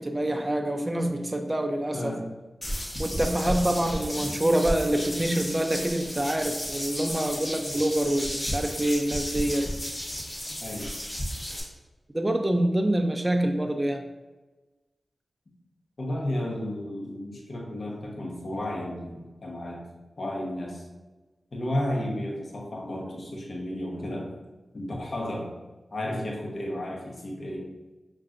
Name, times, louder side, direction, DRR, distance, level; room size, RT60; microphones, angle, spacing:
voice 1, 0.0-2.2 3.0-9.7 12.1-14.1, right 1 dB, 25° right, 4 dB, 0.4 m, -26 dB
voice 2, 1.9-2.3 10.6-10.9 16.0-19.8 20.2-20.9 21.5-24.3 24.7-25.5 25.9-27.7, left 1 dB, 60° left, -2 dB, 1.0 m, -33 dB
sound 1, 2.6-11.6, equal, 35° left, 1.1 m, -33 dB
5.5 x 2.5 x 2.5 m, 1.2 s
cardioid pair, 40°, 0 cm